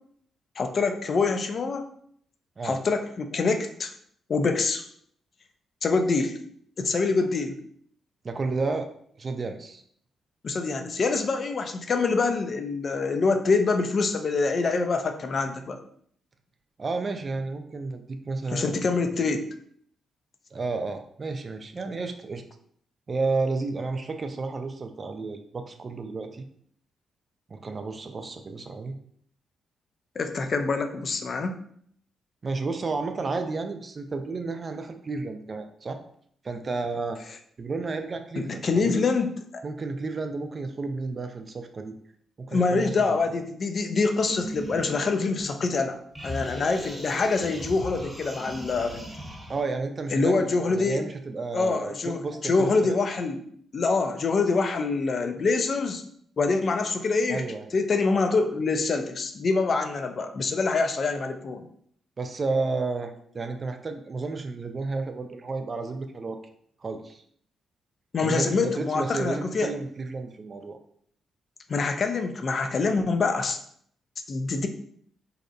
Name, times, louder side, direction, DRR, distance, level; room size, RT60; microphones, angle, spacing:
voice 1, 0.6-1.9 2.6-3.9 4.3-4.8 5.8-6.4 6.8-7.6 10.4-15.8 18.5-19.5 30.2-31.6 38.4-39.6 42.5-46.0 46.2-49.0 50.1-51.0 51.5-53.4 53.7-56.0 56.4-57.4 57.7-61.7 68.1-69.7 71.7-73.6 74.3-74.7, left 4 dB, 50° left, 6 dB, 0.3 m, -25 dB
voice 2, 8.2-8.9 9.2-9.8 16.8-18.8 20.5-22.4 23.1-26.5 27.5-29.0 32.4-36.0 36.4-37.2 37.6-39.1 39.6-42.0 42.4-43.2 49.5-53.0 57.3-57.7 62.2-66.4 66.8-67.2 68.2-70.8, right 3 dB, 45° right, 6 dB, 0.3 m, -32 dB
sound 1, 44.2-45.8 46.2-49.6, equal, 10° right, 0.8 m, -38 dB
2.6 x 2.0 x 2.6 m, 0.63 s
hypercardioid pair, 45°, 0 cm